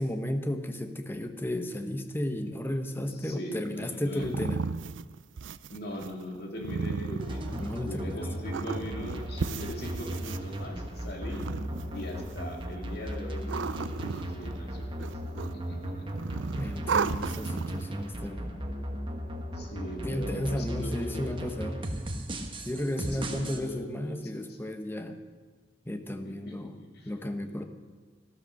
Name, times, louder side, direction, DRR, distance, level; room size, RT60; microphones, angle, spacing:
voice 1, 0.0-4.6 7.5-8.2 16.6-18.5 20.0-21.8 22.6-25.2 25.9-26.7 27.1-27.6, left 1 dB, 10° left, 7 dB, 0.9 m, -33 dB
voice 2, 3.0-4.4 5.7-11.4 11.9-15.1 15.4-16.1 19.5-21.4 23.0-24.6 26.2-27.7, equal, 60° left, 1 dB, 2.5 m, -40 dB
sound 1, 3.6-8.0 8.5-10.4 11.1-12.3 13.1-14.7 15.0-15.7 16.0-17.9, right 5 dB, 80° right, 0.5 m, -34 dB
sound 2, 7.2-23.6, equal, 25° right, 1.4 m, -36 dB
13.0 x 13.0 x 6.4 m, 1.4 s
head